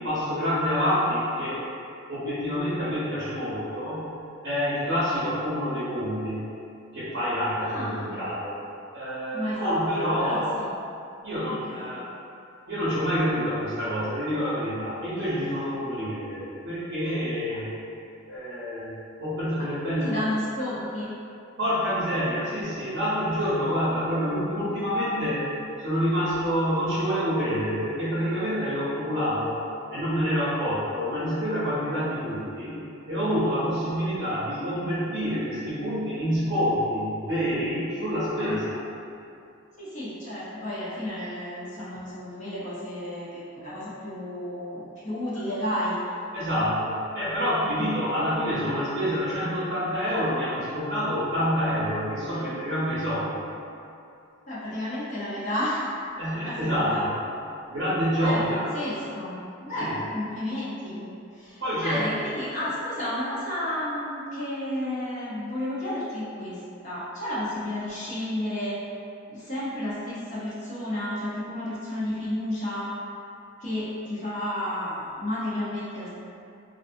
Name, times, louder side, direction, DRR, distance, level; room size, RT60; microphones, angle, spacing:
voice 1, 0.0-1.6 2.1-4.1 4.4-6.5 6.9-8.6 8.9-10.5 11.2-12.1 12.7-17.7 18.3-20.2 21.6-25.5 25.8-29.6 29.9-32.8 33.1-38.7 46.3-53.4 56.2-57.1 57.7-58.6 59.8-60.0 61.6-62.0, equal, 55° right, -11 dB, 0.6 m, -27 dB
voice 2, 7.6-8.2 9.3-10.7 11.4-11.9 17.5-17.6 20.0-21.2 34.0-34.5 38.4-38.6 39.8-46.0 47.6-47.8 54.5-55.9 56.5-57.1 58.2-58.4 58.7-68.8 69.3-73.0 73.6-76.1, left 1 dB, 35° left, -10 dB, 0.5 m, -32 dB
2.4 x 2.2 x 2.5 m, 2.6 s
head